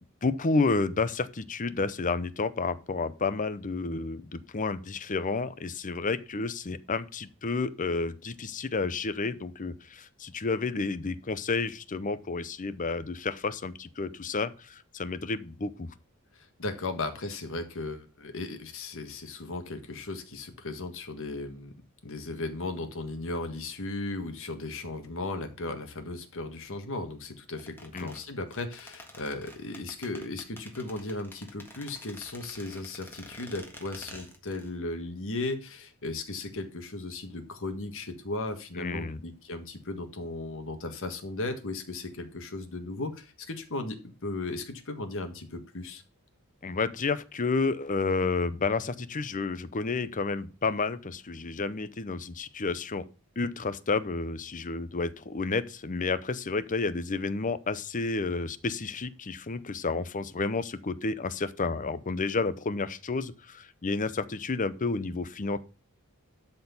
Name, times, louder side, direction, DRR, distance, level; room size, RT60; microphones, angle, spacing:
voice 1, 0.2-15.9 27.9-28.1 38.8-39.2 46.6-53.0 53.4-65.6, left 3 dB, 35° left, 0.7 m, -30 dB
voice 2, 16.6-21.7 22.0-46.0, left 2 dB, 60° left, 1.7 m, -36 dB
sound 1, 27.6-34.7 35.0-35.1, left 1 dB, 10° left, 1.6 m, -48 dB
12.0 x 4.5 x 7.0 m
head